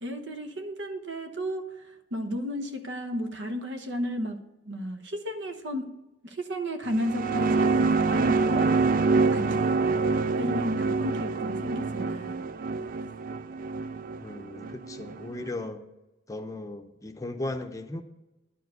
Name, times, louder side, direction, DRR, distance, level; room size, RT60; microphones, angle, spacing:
voice 1, 0.0-5.9 6.2-8.7 9.3-9.7 10.4-12.4, equal, 70° right, 7 dB, 1.1 m, -33 dB
sound 1, 6.9-15.5, right 4 dB, 50° right, 0.4 m, -26 dB
voice 2, 14.2-15.9 16.3-18.0, left 2 dB, 20° left, 6 dB, 0.7 m, -36 dB
11.0 x 4.6 x 8.0 m, 0.99 s
head